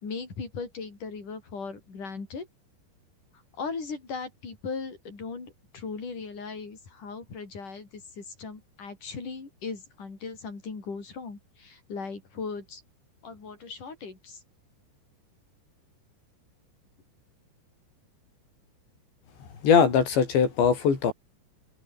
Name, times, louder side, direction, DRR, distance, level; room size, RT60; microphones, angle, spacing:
voice 1, 0.0-2.5 3.6-12.8 13.2-14.4, left 4 dB, 45° left, 7.6 m, -38 dB
voice 2, 19.6-21.1, left 6 dB, 75° left, 7.0 m, -21 dB
open air
omnidirectional pair, 5.2 m